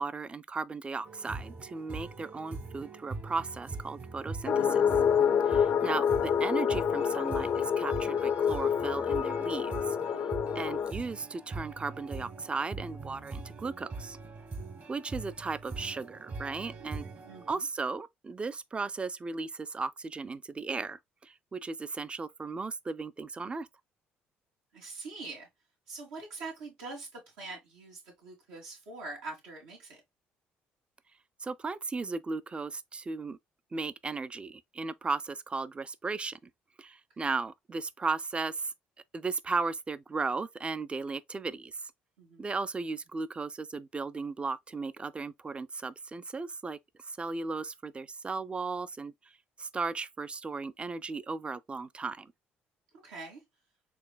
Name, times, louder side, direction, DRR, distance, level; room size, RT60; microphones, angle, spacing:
voice 1, 0.0-4.8 5.5-10.0 10.5-14.2 14.9-17.1 17.5-23.7 31.4-33.4 33.7-36.5 36.8-38.7 39.1-41.9 42.4-46.8 47.1-49.1 49.6-52.3, right 4 dB, 25° right, 0.4 m, -36 dB
sound 1, 1.0-17.5, right 3 dB, 45° right, 1.3 m, -42 dB
sound 2, 4.5-10.9, left 7 dB, 55° left, 0.4 m, -27 dB
voice 2, 17.2-17.7 24.7-25.5 25.9-30.0 42.2-42.5 53.0-53.4, right 3 dB, 90° right, 2.2 m, -44 dB
4.7 x 3.2 x 2.2 m
supercardioid pair, 70°, 4 cm